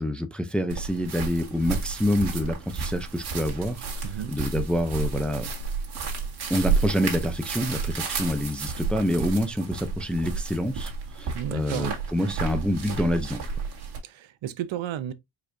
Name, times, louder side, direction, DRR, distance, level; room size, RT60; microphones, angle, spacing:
voice 1, 0.0-5.5 6.5-13.4, equal, ahead, 0.4 m, -27 dB
sound 1, 0.7-14.0, right 5 dB, 55° right, 1.8 m, -31 dB
voice 2, 11.3-12.0 12.3-12.4 14.0-15.1, right 10 dB, 75° right, 0.8 m, -33 dB
4.8 x 4.3 x 2.6 m
cardioid pair, 125°, 47 cm